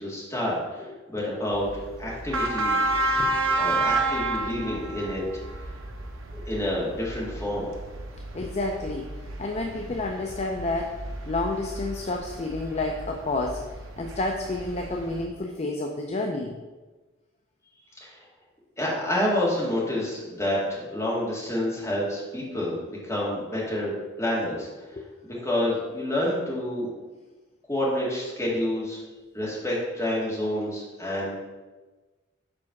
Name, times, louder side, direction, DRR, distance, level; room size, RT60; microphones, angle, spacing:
voice 1, 0.0-2.8 3.6-5.2 6.3-7.7 18.0-18.1 18.8-22.8 23.0-23.9 24.2-24.7 25.2-26.9 27.7-29.0 29.3-31.4, left 1 dB, 15° left, -5 dB, 1.9 m, -28 dB
sound 1, 1.5-15.3, right 2 dB, 85° right, 0.8 m, -31 dB
voice 2, 2.9-3.6 4.9-5.0 8.3-9.1 9.4-10.9 11.3-13.6 14.0-16.5 25.0-25.1, left 2 dB, 35° left, 2 dB, 0.5 m, -30 dB
5.1 x 4.8 x 5.8 m, 1.2 s
head